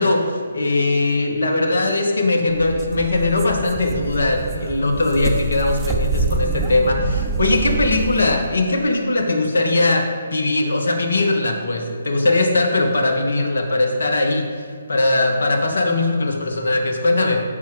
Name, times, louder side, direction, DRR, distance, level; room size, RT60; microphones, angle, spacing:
voice 1, 0.0-17.4, left 2 dB, 65° left, 3 dB, 1.5 m, -20 dB
sound 1, 2.5-8.4, right 3 dB, 15° right, 0.8 m, -25 dB
14.5 x 6.0 x 3.8 m, 2.2 s
figure-of-eight pair, 140°, 0 cm